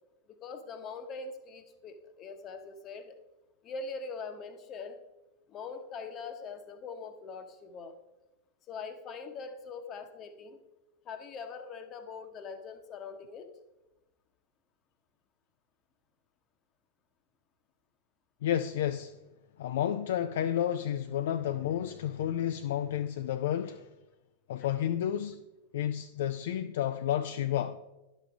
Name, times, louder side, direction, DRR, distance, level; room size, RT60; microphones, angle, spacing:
voice 1, 0.4-3.2 3.6-5.0 5.5-8.0 8.7-10.6 11.0-13.5, left 4 dB, 30° left, 0.9 m, -42 dB
voice 2, 18.4-19.2 19.6-23.9 24.5-25.4 25.7-27.8, left 10 dB, 55° left, 0.3 m, -31 dB
11.0 x 6.2 x 3.5 m
figure-of-eight pair, 90°, 0 cm